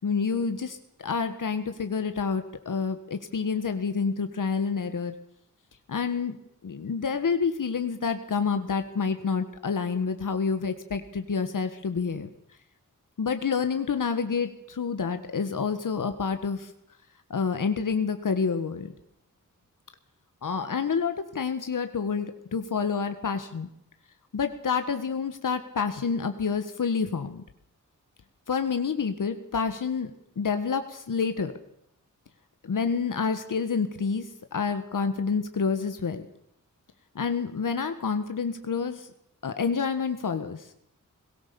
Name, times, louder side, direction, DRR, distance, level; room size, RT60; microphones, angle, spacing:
voice 1, 0.0-0.8 1.0-5.1 5.9-6.4 6.6-12.3 13.2-16.7 17.3-18.9 20.4-23.7 24.3-27.4 28.5-30.1 30.4-31.5 32.6-36.2 37.1-39.1 39.4-40.7, left 5 dB, 75° left, 8 dB, 1.6 m, -28 dB
21.5 x 18.0 x 7.0 m, 0.76 s
wide cardioid pair, 100°, 32 cm